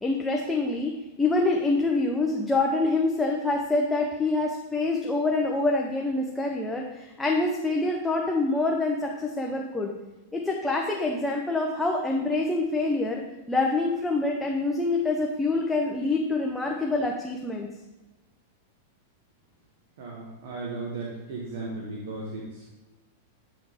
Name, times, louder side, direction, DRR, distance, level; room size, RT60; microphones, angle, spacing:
voice 1, 0.0-9.9 10.3-13.2 13.5-17.7, left 2 dB, 10° left, 0 dB, 0.6 m, -26 dB
voice 2, 20.0-22.7, right 3 dB, 70° right, -3 dB, 1.1 m, -36 dB
7.7 x 3.8 x 3.5 m, 1.1 s
hypercardioid pair, 120°, 0 cm